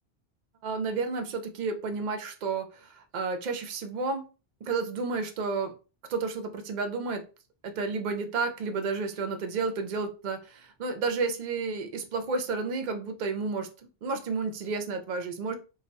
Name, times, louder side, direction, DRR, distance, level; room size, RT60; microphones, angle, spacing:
voice 1, 0.6-4.2 4.6-5.7 6.1-7.2 7.6-13.7 14.0-15.5, right 4 dB, 55° right, 0.6 m, -31 dB
2.3 x 2.2 x 3.9 m
omnidirectional pair, 1.1 m